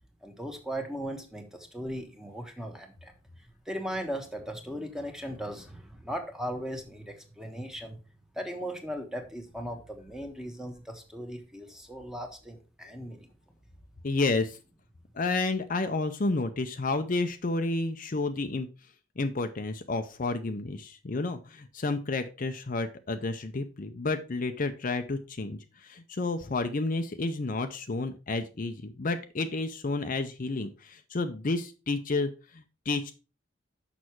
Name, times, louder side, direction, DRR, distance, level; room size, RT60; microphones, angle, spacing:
voice 1, 0.2-8.0 8.3-13.3, equal, 5° right, 4 dB, 1.2 m, -38 dB
voice 2, 14.0-14.6 15.1-18.7 19.2-33.1, left 3 dB, 45° left, 7 dB, 0.6 m, -31 dB
6.4 x 5.9 x 4.5 m, 0.33 s
head